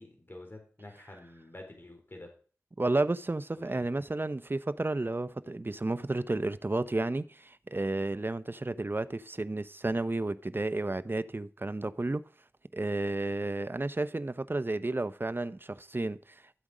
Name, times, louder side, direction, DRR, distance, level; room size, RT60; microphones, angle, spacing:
voice 1, 0.0-2.3 3.6-3.8, left 1 dB, 40° left, 4.3 m, -48 dB
voice 2, 2.8-12.3 12.7-16.2, right 2 dB, 40° right, 0.8 m, -32 dB
13.0 x 8.0 x 5.0 m
wide cardioid pair, 50°, 6 cm